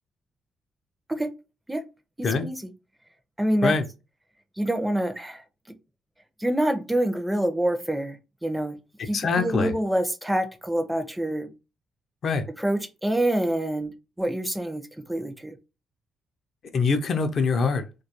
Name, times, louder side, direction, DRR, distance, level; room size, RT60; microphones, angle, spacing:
voice 1, 2.2-2.7 3.4-3.8 4.6-5.4 6.4-8.8 9.1-11.5 12.6-15.6, right 1 dB, 10° right, 0.4 m, -26 dB
voice 2, 9.1-9.7 12.2-12.5 16.7-17.8, left 4 dB, 55° left, 0.4 m, -23 dB
2.2 x 2.2 x 2.8 m
cardioid pair, 90°, 0 cm